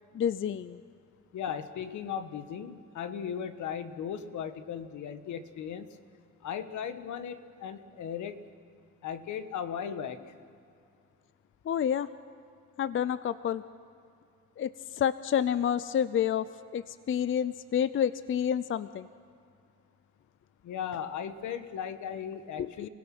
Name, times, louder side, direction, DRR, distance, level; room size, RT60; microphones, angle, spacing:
voice 1, 0.1-0.8 11.6-12.1 12.8-13.6 14.6-16.5 16.7-19.1 22.6-22.9, left 9 dB, 45° left, 15 dB, 0.5 m, -29 dB
voice 2, 1.3-5.9 6.4-8.4 9.0-10.3 20.6-22.9, left 8 dB, 75° left, 10 dB, 1.4 m, -37 dB
30.0 x 17.0 x 6.1 m, 2.4 s
cardioid pair, 90°, 30 cm